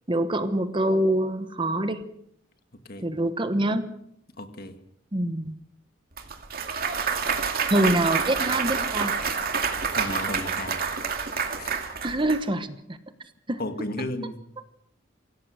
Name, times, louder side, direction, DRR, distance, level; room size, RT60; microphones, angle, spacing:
voice 1, 0.1-2.0 3.0-3.9 5.1-5.6 7.7-9.2 12.0-13.0 13.5-13.6, right 1 dB, 25° right, 10 dB, 1.1 m, -25 dB
voice 2, 2.7-3.1 4.4-4.8 9.9-10.9 11.6-11.7 13.6-14.4, left 1 dB, 50° left, 8 dB, 1.9 m, -34 dB
Clapping / Cheering / Applause, 6.2-12.4, right 6 dB, 50° right, 2.5 m, -28 dB
24.5 x 17.5 x 6.5 m, 0.72 s
head